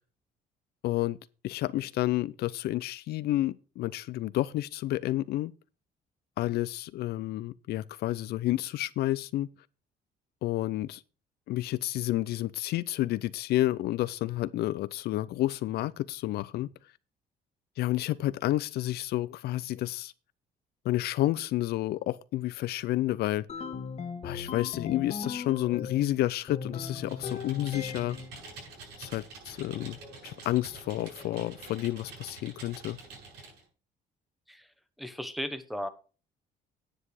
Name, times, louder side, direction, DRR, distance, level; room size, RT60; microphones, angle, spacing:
voice 1, 0.8-1.2 1.4-5.5 6.4-9.5 10.4-11.0 11.5-16.7 17.8-20.1 20.8-23.5 24.2-28.2 29.0-30.0 30.2-33.0, left 15 dB, 70° left, 0.5 m, -30 dB
sound 1, 23.5-26.1 26.5-28.3, left 6 dB, 40° left, 1.4 m, -38 dB
Computer keyboard, 26.8-33.6, right 3 dB, 85° right, 7.5 m, -47 dB
voice 2, 34.5-35.9, equal, ahead, 1.1 m, -37 dB
9.9 x 8.1 x 4.9 m
cardioid pair, 110°, 17 cm